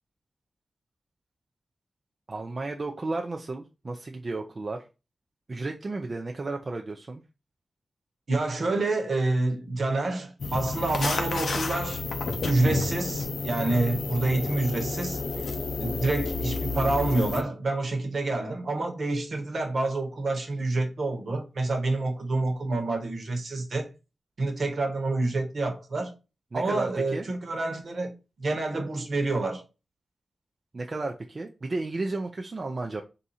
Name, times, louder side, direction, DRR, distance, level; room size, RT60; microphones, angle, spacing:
voice 1, 2.3-4.9 5.5-7.2 26.5-27.3 30.7-33.0, right 3 dB, 40° right, 0.4 m, -33 dB
voice 2, 8.3-12.0 12.4-15.2 15.8-23.9 24.4-26.1 26.5-28.1 28.4-29.6, right 2 dB, 60° right, 1.1 m, -28 dB
sound 1, 10.4-17.4, left 3 dB, 85° left, 0.5 m, -30 dB
3.7 x 2.7 x 4.2 m
wide cardioid pair, 130°, 0 cm